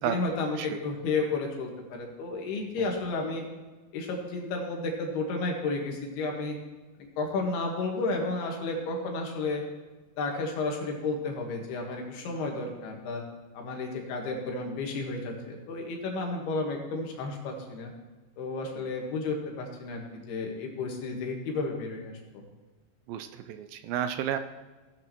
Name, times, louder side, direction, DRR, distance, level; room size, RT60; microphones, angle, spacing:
voice 1, 0.0-3.4 3.9-6.6 7.2-9.6 10.2-13.2 13.5-17.9 18.4-22.4, left 3 dB, 80° left, 1 dB, 3.5 m, -32 dB
voice 2, 23.1-24.4, right 10 dB, 80° right, 9 dB, 2.1 m, -32 dB
16.0 x 9.5 x 3.0 m, 1.3 s
omnidirectional pair, 4.6 m